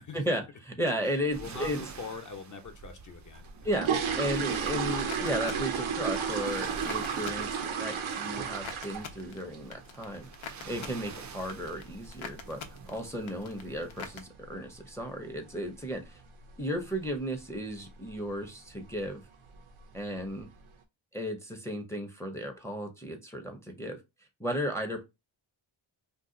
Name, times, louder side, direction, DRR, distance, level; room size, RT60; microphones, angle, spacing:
voice 1, 0.0-1.8 3.6-3.9 4.2-10.3 10.6-12.6 12.9-16.2 16.6-19.2 19.9-20.5 21.1-24.0 24.4-25.0, equal, 5° left, 0.6 m, -34 dB
voice 2, 1.0-3.4 3.9-4.1, left 5 dB, 40° left, 0.8 m, -43 dB
sound 1, 1.3-14.2, right 5 dB, 40° right, 0.4 m, -48 dB
sound 2, 3.4-9.3 9.5-9.8 10.2-10.3 10.6-10.8 11.2-11.4 11.6-11.7 12.3-12.4 12.7-12.8 13.3-13.7 13.9-14.0 14.4-14.6 15.0-15.1 15.5-15.6 16.2-16.5 16.8-17.2 17.5-17.6 18.1-18.2 18.9-19.1 19.5-19.9 20.4-20.5, right 7 dB, 85° right, 0.7 m, -32 dB
sound 3, 3.8-14.2, left 6 dB, 80° left, 0.7 m, -47 dB
2.7 x 2.3 x 3.7 m
wide cardioid pair, 90°, 47 cm